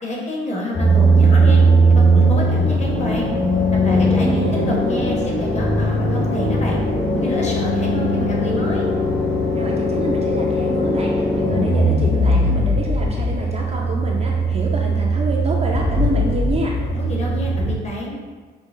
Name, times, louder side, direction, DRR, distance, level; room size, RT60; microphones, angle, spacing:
voice 1, 0.0-1.6 1.9-3.3 3.8-6.8 7.1-8.9 16.9-18.1, left 1 dB, 35° left, -3 dB, 0.9 m, -28 dB
sound 1, 0.7-17.7, right 1 dB, 80° left, 1.3 m, -19 dB
voice 2, 3.9-4.7 9.5-16.8, right 2 dB, 35° right, -1 dB, 0.4 m, -27 dB
5.5 x 2.0 x 2.5 m, 1.5 s
cardioid pair, 90°, 20 cm